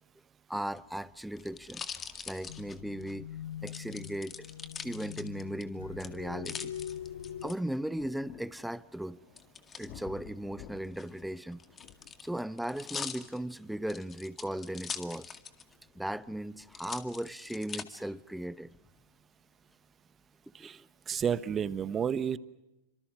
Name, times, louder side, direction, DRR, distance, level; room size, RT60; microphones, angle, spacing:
voice 1, 0.5-1.8 2.3-3.3 3.6-4.5 4.8-6.7 7.4-9.2 9.7-11.6 12.2-15.4 16.0-18.7 20.6-20.8, right 1 dB, 5° right, 0.8 m, -37 dB
sound 1, 0.6-3.1 3.7-5.6 6.0-7.5 9.4-9.9 10.8-15.7 16.1-16.2 16.7-17.8 18.5-19.0, left 6 dB, 25° left, 2.1 m, -43 dB
sound 2, 2.5-7.5, left 10 dB, 70° left, 1.1 m, -43 dB
sound 3, 5.7-20.4 21.3-21.4, left 10 dB, 45° left, 1.9 m, -57 dB
voice 2, 21.1-22.4, right 8 dB, 25° right, 1.2 m, -31 dB
29.0 x 26.0 x 6.1 m
hypercardioid pair, 100°, 0 cm